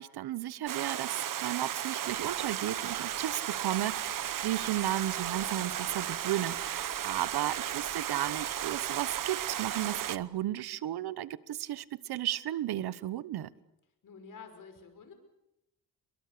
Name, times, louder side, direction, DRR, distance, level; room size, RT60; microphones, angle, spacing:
voice 1, 0.0-13.5, right 13 dB, 90° right, 17 dB, 1.1 m, -34 dB
Stream, 0.7-10.2, right 10 dB, 60° right, 1.0 m, -35 dB
sound 1, 2.1-10.3, right 1 dB, 5° right, 6.9 m, -60 dB
voice 2, 14.0-15.1, left 5 dB, 60° left, 7 dB, 5.7 m, -49 dB
29.0 x 23.0 x 6.7 m, 0.87 s
cardioid pair, 120°, 37 cm